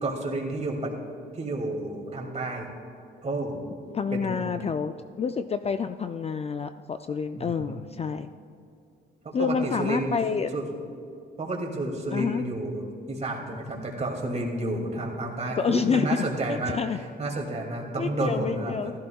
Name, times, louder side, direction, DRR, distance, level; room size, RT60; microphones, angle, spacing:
voice 1, 0.0-0.9 1.3-2.7 3.2-3.6 4.1-4.5 7.4-7.8 9.2-10.2 10.5-10.7 11.4-16.8 17.2-19.0, right 2 dB, 35° right, 0 dB, 2.6 m, -31 dB
voice 2, 3.9-8.3 9.3-10.5 12.1-12.4 15.6-16.2 16.5-17.0 18.0-18.9, left 6 dB, 30° left, 9 dB, 0.4 m, -28 dB
15.5 x 14.5 x 2.4 m, 2.5 s
cardioid pair, 90°, 20 cm